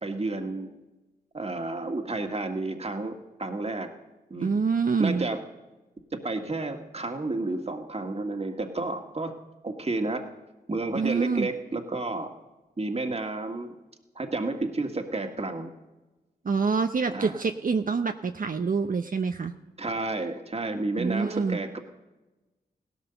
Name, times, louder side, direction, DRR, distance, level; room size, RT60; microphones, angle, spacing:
voice 1, 0.0-0.7 1.3-3.9 4.3-4.6 5.0-5.4 6.1-9.4 9.6-10.3 10.7-12.3 12.8-13.7 14.2-15.7 17.1-17.4 19.8-21.8, right 2 dB, 35° right, 4 dB, 1.8 m, -31 dB
voice 2, 4.4-5.3 10.9-11.5 16.4-19.5 21.0-21.6, right 5 dB, 55° right, 6 dB, 0.8 m, -26 dB
16.5 x 12.5 x 6.9 m, 1.1 s
cardioid pair, 40°, 17 cm